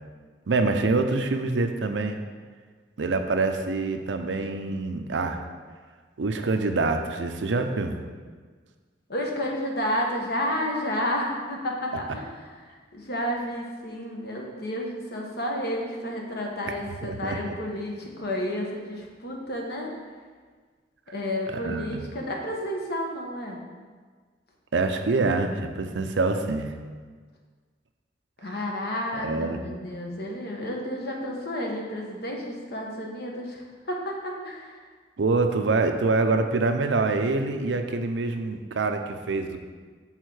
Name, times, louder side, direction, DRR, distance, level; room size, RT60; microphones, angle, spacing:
voice 1, 0.5-2.2 3.0-5.4 6.2-8.0 17.0-17.5 21.5-22.0 24.7-26.7 29.1-29.6 35.2-39.6, right 3 dB, 85° right, 6 dB, 0.6 m, -25 dB
voice 2, 9.1-12.5 12.9-19.9 21.1-23.6 28.4-34.8, left 1 dB, 60° left, 0 dB, 1.2 m, -31 dB
6.4 x 3.7 x 6.3 m, 1.5 s
head